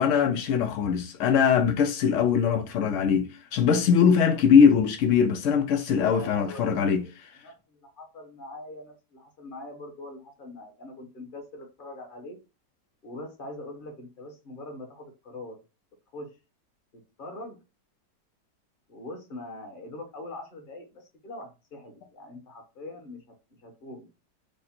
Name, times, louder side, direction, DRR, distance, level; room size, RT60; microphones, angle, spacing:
voice 1, 0.0-7.0, left 7 dB, 90° left, 0.6 m, -21 dB
voice 2, 6.0-7.1 7.4-12.4 13.0-15.6 16.1-16.3 16.9-17.6 18.9-23.2 23.6-24.1, left 2 dB, 35° left, 1.1 m, -42 dB
5.0 x 2.1 x 4.2 m
omnidirectional pair, 1.9 m